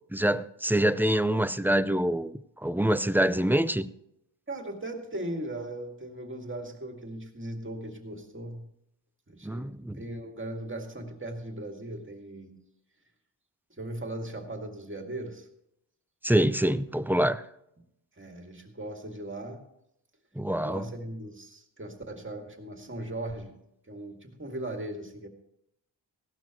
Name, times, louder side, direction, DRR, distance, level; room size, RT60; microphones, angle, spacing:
voice 1, 0.1-3.9 9.4-10.0 16.2-17.4 20.4-20.9, right 1 dB, 5° right, 0.4 m, -25 dB
voice 2, 4.5-8.7 9.3-12.5 13.8-15.5 18.2-19.6 20.6-23.6 23.9-25.3, right 1 dB, 25° right, 2.2 m, -38 dB
16.5 x 12.5 x 3.0 m
wide cardioid pair, 90°, 45 cm